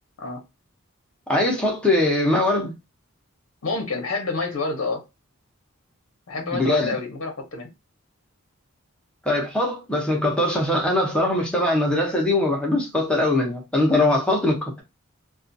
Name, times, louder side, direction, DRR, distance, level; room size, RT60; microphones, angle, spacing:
voice 1, 1.3-2.7 6.5-7.0 9.2-14.8, left 1 dB, 5° left, 0.7 m, -21 dB
voice 2, 3.6-5.0 6.3-7.7, left 3 dB, 70° left, 0.7 m, -28 dB
2.4 x 2.3 x 2.6 m
head